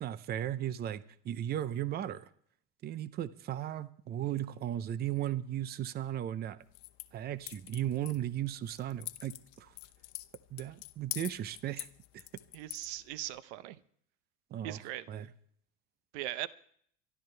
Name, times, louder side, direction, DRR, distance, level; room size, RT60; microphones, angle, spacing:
voice 1, 0.0-2.3 2.8-6.6 7.1-9.7 10.5-11.9 12.1-12.2 14.5-14.8 15.1-15.3, right 11 dB, 30° right, 15 dB, 0.6 m, -36 dB
sound 1, 6.6-13.4, left 20 dB, 85° left, 0.9 m, -47 dB
voice 2, 12.5-13.8 14.6-15.0 16.1-16.5, right 14 dB, 85° right, 16 dB, 0.9 m, -39 dB
24.5 x 12.5 x 3.3 m, 0.63 s
cardioid pair, 155°, 33 cm